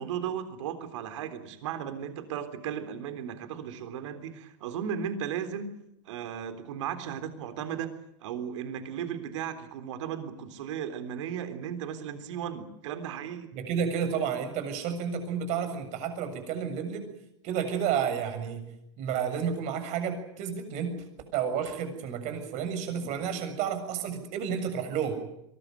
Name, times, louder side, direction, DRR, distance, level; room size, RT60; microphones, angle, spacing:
voice 1, 0.0-5.7 6.1-7.9 8.2-13.5 22.9-23.1, right 8 dB, 75° right, 9 dB, 3.6 m, -36 dB
voice 2, 13.5-17.1 17.4-18.7 19.0-20.9 21.3-25.1, right 7 dB, 50° right, 8 dB, 7.1 m, -31 dB
23.5 x 20.0 x 9.3 m, 0.82 s
supercardioid pair, 130°, 16 cm